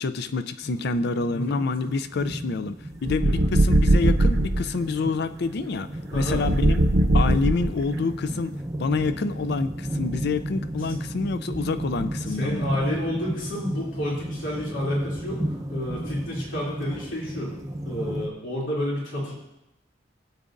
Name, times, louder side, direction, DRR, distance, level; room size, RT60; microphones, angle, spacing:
voice 1, 0.0-6.8 7.1-8.5 8.8-12.7, left 4 dB, 60° left, 12 dB, 0.5 m, -27 dB
sound 1, 0.6-18.3, right 1 dB, 20° right, 0.7 m, -34 dB
sound 2, 3.0-4.6 6.1-8.0, right 1 dB, 70° right, 0.8 m, -20 dB
voice 2, 6.1-6.4 12.3-15.4 15.7-17.5 17.8-19.3, left 1 dB, 85° left, -5 dB, 2.9 m, -29 dB
16.5 x 8.1 x 2.6 m, 0.90 s
head